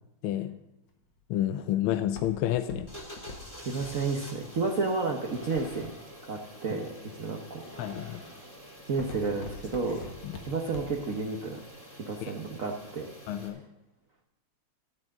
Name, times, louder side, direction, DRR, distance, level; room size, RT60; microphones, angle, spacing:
Walk footsteps, 0.9-6.0 6.6-7.1 7.6-7.9 8.3-11.2 11.5-11.6, left 3 dB, 60° left, 2.1 m, -45 dB
voice 1, 1.3-2.9 7.8-8.2 10.2-10.4 12.2-12.3 13.3-13.6, left 12 dB, 80° left, 10 dB, 1.5 m, -29 dB
sound 1, 2.9-13.5, equal, 10° left, 2.4 m, -47 dB
voice 2, 3.6-5.9 6.2-8.2 8.9-10.0 10.4-11.6 11.9-13.1, right 4 dB, 50° right, 1 dB, 1.1 m, -32 dB
13.5 x 6.2 x 7.5 m, 0.92 s
omnidirectional pair, 2.3 m